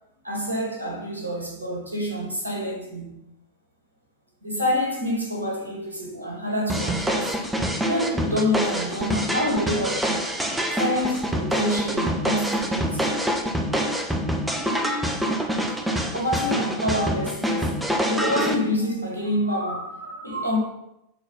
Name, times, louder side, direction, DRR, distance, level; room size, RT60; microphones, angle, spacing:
voice 1, 0.2-3.2 4.4-7.3 7.8-10.3 10.7-13.2 16.1-17.7 18.1-20.6, left 1 dB, 75° right, 2.1 m, -27 dB
sound 1, 6.7-18.5, equal, 5° right, 0.8 m, -26 dB
6.7 x 4.1 x 5.3 m
figure-of-eight pair, 90°, 0 cm